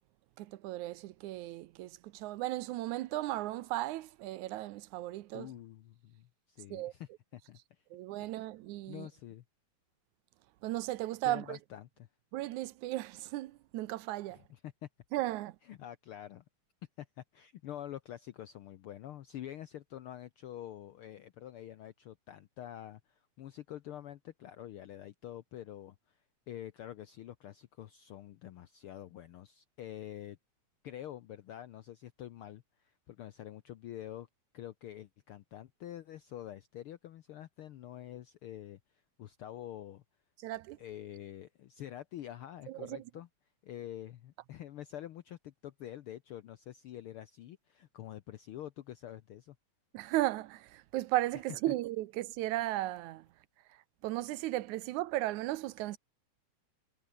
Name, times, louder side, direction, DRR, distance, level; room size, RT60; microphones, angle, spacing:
voice 1, 0.4-5.5 6.7-6.9 7.9-9.1 10.6-11.6 12.3-14.4 15.1-15.6 40.4-40.8 42.7-43.0 49.9-53.3 53.7-56.0, right 16 dB, 80° right, 2.2 m, -36 dB
voice 2, 5.3-7.8 8.3-8.4 8.9-9.4 11.2-12.1 14.3-14.9 15.7-16.4 17.0-26.2 26.5-30.4 30.8-34.3 34.5-38.8 39.2-40.0 40.8-43.3 43.6-49.6 51.7-51.8, left 12 dB, 75° left, 1.2 m, -47 dB
omnidirectional pair, 3.4 m